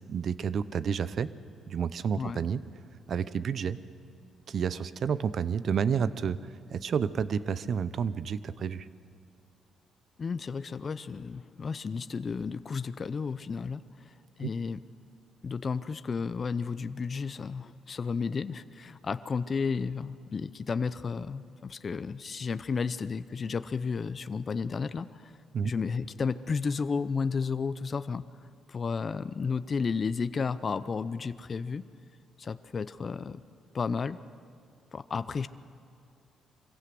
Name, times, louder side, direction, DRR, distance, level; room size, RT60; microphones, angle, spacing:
voice 1, 0.1-1.3 1.7-2.6 3.1-3.8 4.5-6.4 6.7-8.9 14.4-14.5 25.5-25.7, right 7 dB, 55° right, 16 dB, 0.7 m, -30 dB
voice 2, 10.2-13.8 14.4-14.8 15.4-25.3 25.6-28.2 28.7-31.9 32.4-33.4 33.7-34.2 34.9-35.5, left 5 dB, 40° left, 13 dB, 0.6 m, -32 dB
24.0 x 16.0 x 7.8 m, 2.3 s
cardioid pair, 90°, 0 cm